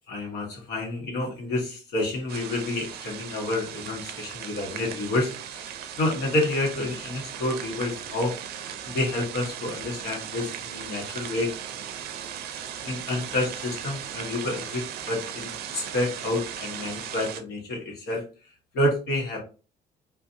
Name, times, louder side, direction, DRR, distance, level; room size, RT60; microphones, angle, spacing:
voice 1, 0.1-8.4 8.8-11.5 12.6-18.2 18.7-19.4, left 2 dB, 75° left, 1 dB, 1.1 m, -29 dB
sound 1, 2.3-17.4, right 9 dB, 70° right, 0.4 m, -37 dB
2.6 x 2.4 x 2.6 m, 0.35 s
cardioid pair, 110°, 17 cm